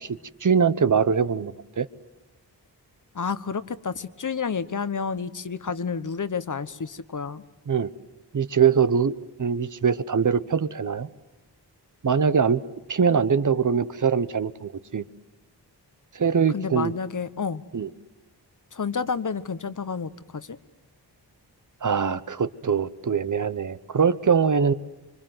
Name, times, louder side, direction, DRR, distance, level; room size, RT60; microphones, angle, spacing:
voice 1, 0.0-1.9 7.7-7.9 8.3-11.1 12.0-12.6 12.9-15.0 16.1-16.9 17.7-17.9 21.8-24.7, right 6 dB, 45° right, 14 dB, 1.0 m, -23 dB
voice 2, 3.1-7.4 16.5-17.6 18.7-20.6, left 5 dB, 45° left, 13 dB, 1.1 m, -30 dB
25.5 x 25.0 x 7.9 m, 1.1 s
wide cardioid pair, 110°, 41 cm